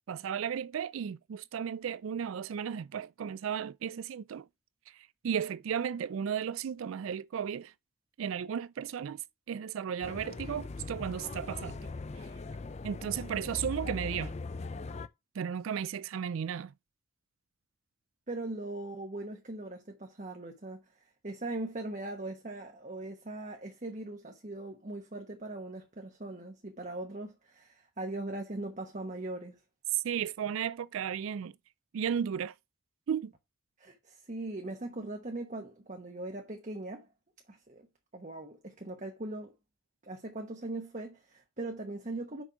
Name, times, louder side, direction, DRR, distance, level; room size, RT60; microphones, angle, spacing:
voice 1, 0.1-4.5 5.2-7.7 8.2-9.2 9.5-11.8 12.8-14.3 15.4-16.7 29.9-31.5 31.9-32.5 33.1-33.3, right 8 dB, 80° right, 0.4 m, -34 dB
sound 1, 10.0-15.1, left 3 dB, 30° left, 0.4 m, -40 dB
voice 2, 18.3-20.8 21.2-29.6 33.8-37.1 37.5-37.8 38.1-39.5 40.0-42.4, right 2 dB, 35° right, 1.0 m, -40 dB
6.2 x 5.5 x 4.6 m
head